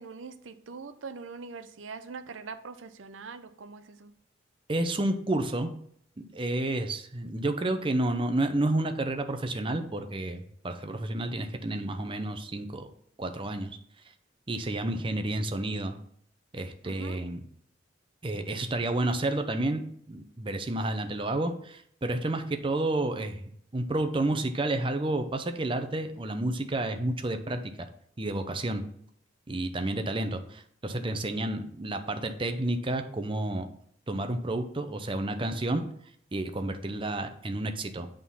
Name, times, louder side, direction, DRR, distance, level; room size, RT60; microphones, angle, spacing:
voice 1, 0.0-4.1 16.8-17.2, right 4 dB, 85° right, 10 dB, 0.6 m, -42 dB
voice 2, 4.7-5.7 6.2-12.9 13.2-13.8 14.5-16.0 16.5-17.4 18.2-27.9 28.2-28.8 29.5-33.7 34.1-35.8 36.3-38.1, right 2 dB, 25° right, 7 dB, 0.6 m, -30 dB
8.6 x 3.8 x 5.5 m, 0.65 s
head